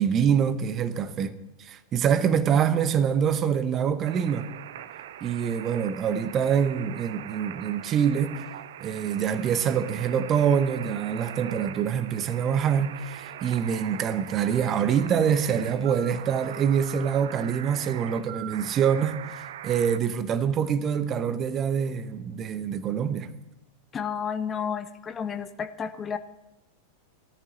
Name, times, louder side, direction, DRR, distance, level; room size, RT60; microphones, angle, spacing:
voice 1, 0.0-4.5 5.2-8.4 8.8-23.3, right 8 dB, 30° right, 0.9 m, -25 dB
sound 1, 4.0-20.0, right 11 dB, 55° right, 0.6 m, -41 dB
voice 2, 23.9-26.2, left 7 dB, 20° left, 0.7 m, -31 dB
17.5 x 13.5 x 4.1 m
figure-of-eight pair, 90°, 0 cm